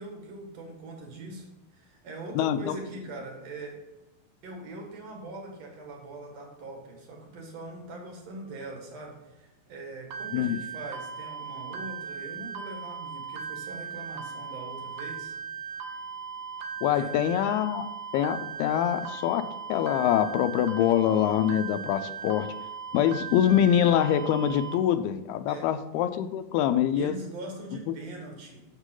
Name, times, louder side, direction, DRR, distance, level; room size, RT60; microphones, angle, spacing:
voice 1, 0.0-1.5 1.7-3.8 4.4-15.3 16.9-17.3 25.5-25.8 27.0-28.6, right 2 dB, 50° right, 1 dB, 2.5 m, -42 dB
voice 2, 2.4-2.7 10.3-10.6 16.8-22.5 22.9-27.2 27.9-28.0, left 10 dB, 90° left, 10 dB, 2.5 m, -25 dB
sound 1, 10.1-24.7, right 6 dB, 75° right, 2.3 m, -38 dB
8.1 x 7.4 x 3.8 m, 1.0 s
omnidirectional pair, 4.4 m